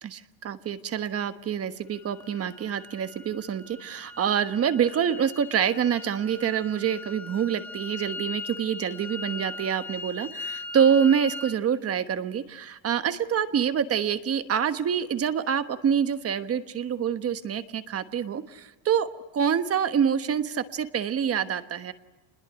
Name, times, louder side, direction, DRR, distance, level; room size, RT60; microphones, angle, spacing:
voice 1, 0.0-19.1 19.3-21.9, right 8 dB, 30° right, 10 dB, 1.3 m, -26 dB
sound 1, 1.9-11.6, left 3 dB, 5° left, 2.2 m, -40 dB
28.5 x 21.0 x 8.9 m, 1.1 s
cardioid pair, 155°, 49 cm